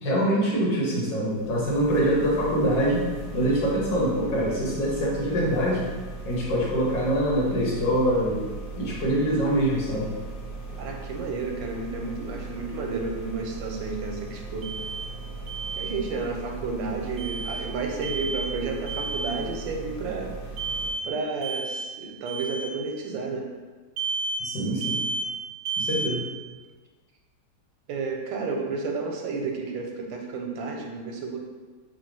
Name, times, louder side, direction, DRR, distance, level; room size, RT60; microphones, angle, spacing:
voice 1, 0.0-3.0 3.3-5.8 6.3-10.1 24.4-25.0 25.8-26.2, equal, 85° left, -4 dB, 1.8 m, -24 dB
sound 1, 1.3-20.9, right 3 dB, 65° left, 0.9 m, -38 dB
voice 2, 10.7-14.7 15.8-20.3 21.0-23.5 26.0-26.1 27.9-31.4, right 4 dB, 90° right, 2 dB, 1.4 m, -31 dB
Alarm, 14.6-15.1 15.5-15.9 17.2-17.6 18.0-18.5 18.9-19.4 20.6-21.1 21.4-21.9 22.3-22.7 24.0-24.5 24.8-25.3 25.7-26.1, right 3 dB, 70° right, 0.9 m, -31 dB
3.9 x 2.3 x 4.6 m, 1.4 s
omnidirectional pair, 1.9 m